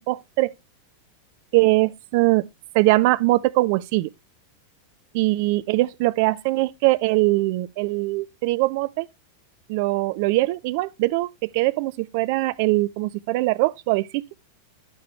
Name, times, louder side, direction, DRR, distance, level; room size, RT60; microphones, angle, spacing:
voice 1, 0.1-0.5 1.5-2.4 2.7-4.1 5.1-9.1 9.7-14.2, right 20 dB, 45° right, 0.5 m, -22 dB
10.0 x 6.7 x 3.3 m
figure-of-eight pair, 90°, 0 cm